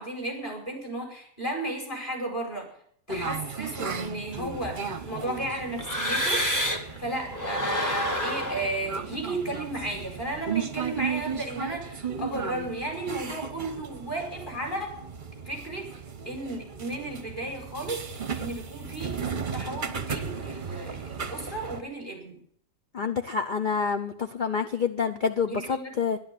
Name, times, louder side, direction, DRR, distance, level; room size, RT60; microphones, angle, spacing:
voice 1, 0.0-2.7 3.1-6.5 7.0-15.1 15.5-18.1 18.4-22.4 25.5-25.9, right 1 dB, 25° left, 1 dB, 5.3 m, -34 dB
sound 1, 3.1-21.8, right 6 dB, 35° right, 0.9 m, -36 dB
sound 2, 4.3-7.0 7.3-10.4, equal, 10° left, 1.6 m, -31 dB
voice 2, 22.9-26.2, left 5 dB, 50° left, 7 dB, 0.6 m, -27 dB
13.0 x 11.5 x 8.3 m, 0.64 s
omnidirectional pair, 1.9 m